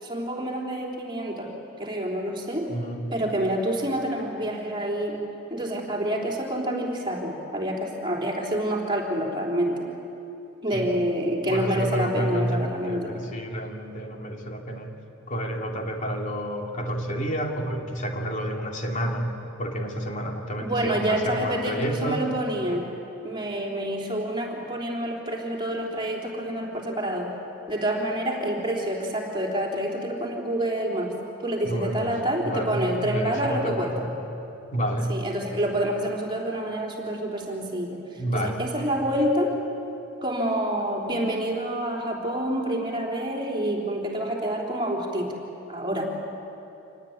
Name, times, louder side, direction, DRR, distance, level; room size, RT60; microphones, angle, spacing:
voice 1, 0.0-2.7 3.1-5.2 5.5-9.8 10.6-13.1 20.6-22.9 23.2-27.3 27.7-31.1 31.4-34.0 35.1-39.6 40.2-45.4 45.7-46.0, right 1 dB, 25° right, -1 dB, 3.8 m, -27 dB
voice 2, 2.7-3.1 10.7-10.9 11.5-15.0 15.3-22.2 31.7-32.1 32.4-34.1 34.7-35.2 38.2-38.7, right 1 dB, 35° left, 1 dB, 2.7 m, -30 dB
26.5 x 19.0 x 9.7 m, 2.9 s
head